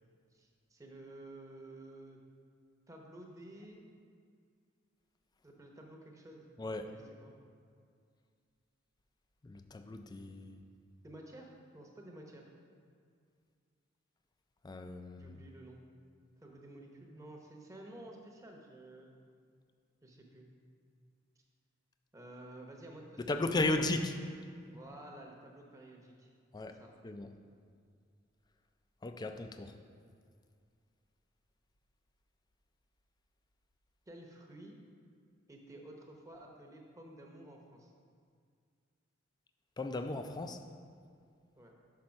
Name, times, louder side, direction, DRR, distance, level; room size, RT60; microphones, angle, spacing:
voice 1, 0.3-2.2 2.9-3.8 5.4-6.5 6.8-7.3 11.0-12.5 15.2-15.8 16.4-19.2 20.0-20.5 22.1-23.3 23.6-23.8 24.6-26.3 26.6-26.9 34.1-34.7 35.5-37.9 41.6-41.7, right 1 dB, 15° right, 0 dB, 0.8 m, -52 dB
voice 2, 6.6-6.9 9.4-10.6 14.6-15.3 23.2-24.1 26.5-26.8 27.0-27.3 29.0-29.8 39.8-40.6, left 2 dB, 20° left, 7 dB, 0.3 m, -35 dB
5.9 x 5.3 x 5.2 m, 2.2 s
head